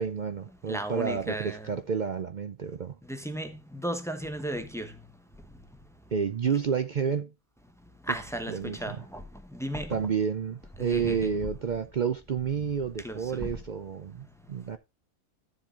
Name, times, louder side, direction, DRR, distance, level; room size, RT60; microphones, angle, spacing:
voice 1, 0.0-3.0 6.1-7.3 8.5-9.0 9.9-14.8, right 6 dB, 65° right, 0.4 m, -30 dB
voice 2, 0.7-1.7 3.1-4.9 8.1-9.2 9.5-10.0 10.8-11.3 13.0-13.5, right 1 dB, ahead, 0.9 m, -35 dB
13.5 x 7.4 x 2.5 m
omnidirectional pair, 1.5 m